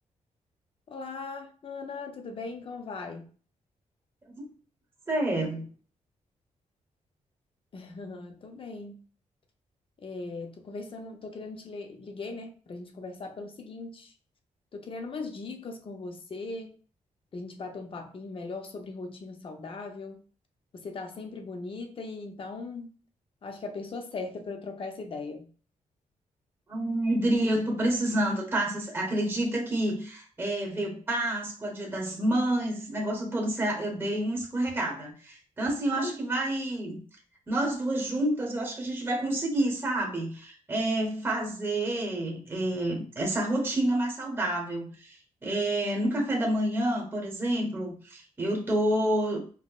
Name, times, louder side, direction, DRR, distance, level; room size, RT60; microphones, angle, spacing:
voice 1, 0.9-3.3 7.7-9.0 10.0-14.1 14.7-16.8 17.3-20.2 20.7-22.9 23.4-25.5 36.0-36.1, left 3 dB, 45° left, 0.6 m, -39 dB
voice 2, 5.1-5.7 26.7-37.0 37.5-49.4, right 1 dB, 15° right, 1.0 m, -29 dB
5.4 x 2.1 x 2.3 m
wide cardioid pair, 130°, 13 cm